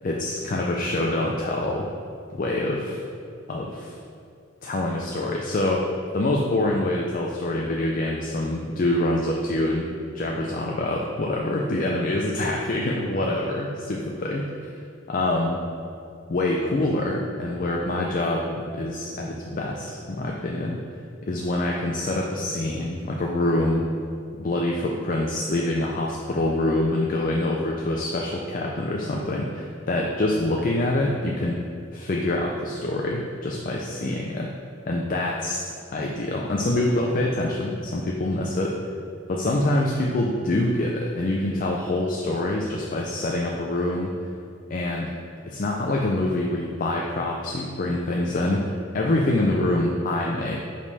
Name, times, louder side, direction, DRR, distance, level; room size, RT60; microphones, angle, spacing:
voice 1, 0.0-1.9 2.3-3.0 3.5-4.0 4.6-14.4 15.1-15.6 16.3-20.8 21.2-23.9 24.4-34.5 34.9-35.6 35.9-38.8 39.3-44.3 44.7-45.1 45.5-50.6, left 1 dB, 40° left, -1 dB, 0.5 m, -25 dB
5.2 x 5.2 x 4.1 m, 2.4 s
head